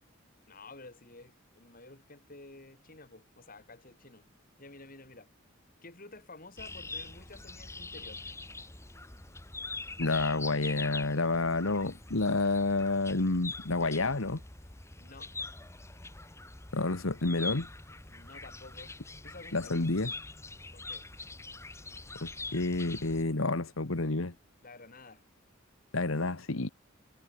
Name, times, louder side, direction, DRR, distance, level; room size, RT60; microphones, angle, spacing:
voice 1, 0.5-4.3 4.6-5.3 5.8-8.2 15.0-15.3 18.1-18.9 19.2-19.6 20.7-21.1 24.6-25.2, left 2 dB, 45° left, 5.1 m, -51 dB
sound 1, 6.6-23.2, left 3 dB, 15° left, 1.1 m, -43 dB
voice 2, 10.0-14.4 16.7-17.7 19.5-20.1 22.2-24.3 25.9-26.7, left 3 dB, 80° left, 1.6 m, -29 dB
head